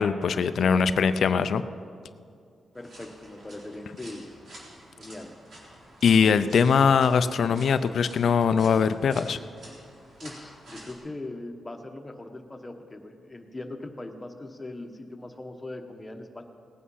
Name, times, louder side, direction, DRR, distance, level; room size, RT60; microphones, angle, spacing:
voice 1, 0.0-1.6 6.0-9.4, left 6 dB, 60° left, 12 dB, 0.4 m, -21 dB
voice 2, 2.7-4.3 5.0-5.3 10.2-16.4, left 2 dB, 15° left, 4 dB, 1.1 m, -40 dB
sound 1, 2.7-10.9, right 1 dB, 65° right, 3.8 m, -49 dB
18.5 x 8.6 x 5.5 m, 2.3 s
wide cardioid pair, 135°, 0 cm